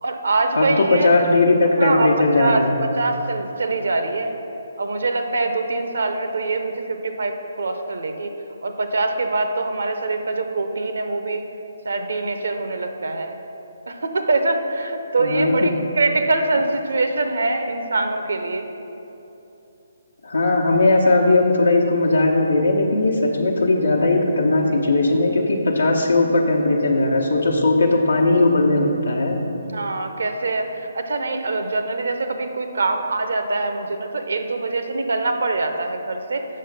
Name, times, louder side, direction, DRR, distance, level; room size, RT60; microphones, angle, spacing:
voice 1, 0.0-1.1 1.8-2.1 2.4-2.7 3.0-4.3 4.8-11.4 11.8-13.4 13.9-18.7 29.7-36.5, right 3 dB, 65° right, 6 dB, 0.8 m, -24 dB
voice 2, 0.5-2.7 15.2-15.7 20.2-29.4, left 2 dB, 75° left, -2 dB, 1.0 m, -18 dB
7.6 x 6.5 x 5.3 m, 3.0 s
figure-of-eight pair, 140°, 0 cm